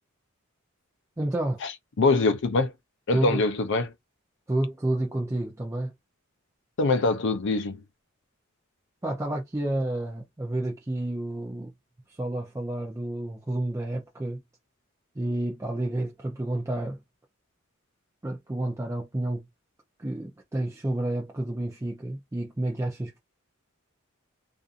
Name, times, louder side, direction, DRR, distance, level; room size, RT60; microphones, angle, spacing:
voice 1, 1.2-1.6 3.1-3.4 4.5-5.9 9.0-11.7 12.2-14.4 15.2-17.0 18.2-19.4 20.0-23.2, right 1 dB, 15° right, 0.5 m, -30 dB
voice 2, 2.0-2.7 3.1-3.9 6.8-7.8, left 3 dB, 60° left, 0.5 m, -23 dB
2.6 x 2.5 x 2.4 m
head